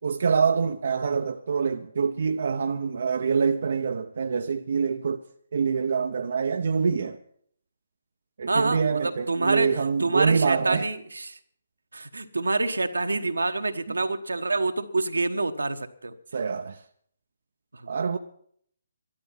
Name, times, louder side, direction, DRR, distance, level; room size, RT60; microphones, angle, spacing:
voice 1, 0.0-5.2 5.5-7.2 8.4-10.9 16.3-16.8 17.9-18.2, right 5 dB, 60° right, 0.7 m, -25 dB
voice 2, 8.5-11.4 11.9-16.1 17.7-17.9, right 2 dB, 80° right, 1.2 m, -27 dB
13.5 x 12.5 x 5.7 m
figure-of-eight pair, 140°, 0 cm